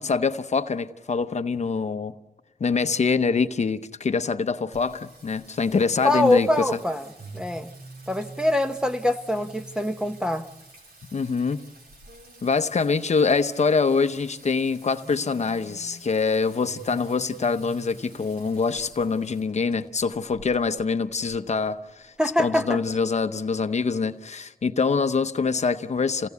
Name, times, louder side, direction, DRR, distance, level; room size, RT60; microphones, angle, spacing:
voice 1, 0.0-2.1 2.6-6.7 11.1-11.6 12.4-22.1 22.4-26.3, left 4 dB, 45° left, 0.8 m, -24 dB
Singing, 4.7-22.3, right 2 dB, 75° right, 4.2 m, -47 dB
voice 2, 6.0-7.0 7.3-7.7 8.1-10.5 22.2-22.8, left 1 dB, 5° right, 0.8 m, -23 dB
28.0 x 17.0 x 8.2 m
wide cardioid pair, 155°, 16 cm